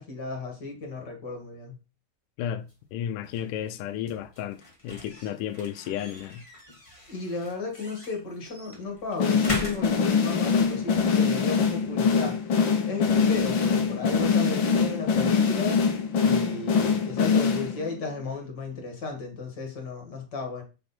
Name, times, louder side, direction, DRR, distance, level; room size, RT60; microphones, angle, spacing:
voice 1, 0.0-1.8 7.1-12.4 12.9-15.8 16.2-20.6, left 3 dB, 35° left, 2.3 m, -34 dB
voice 2, 2.4-6.5, left 10 dB, 85° left, 2.3 m, -33 dB
sound 1, 2.6-15.3, left 1 dB, 15° left, 1.1 m, -44 dB
sound 2, 9.2-18.0, left 5 dB, 55° left, 1.4 m, -23 dB
6.9 x 6.6 x 4.4 m
omnidirectional pair, 3.7 m